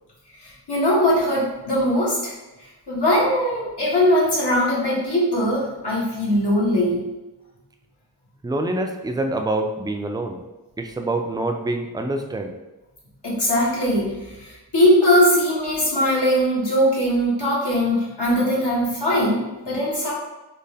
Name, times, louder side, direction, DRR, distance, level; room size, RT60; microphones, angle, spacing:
voice 1, 0.4-2.3 2.9-7.0 13.2-20.1, equal, 75° left, -6 dB, 1.4 m, -20 dB
voice 2, 8.4-10.4 10.8-12.5, right 2 dB, 10° right, 4 dB, 0.3 m, -26 dB
4.2 x 2.1 x 3.4 m, 1.1 s
wide cardioid pair, 50°, 40 cm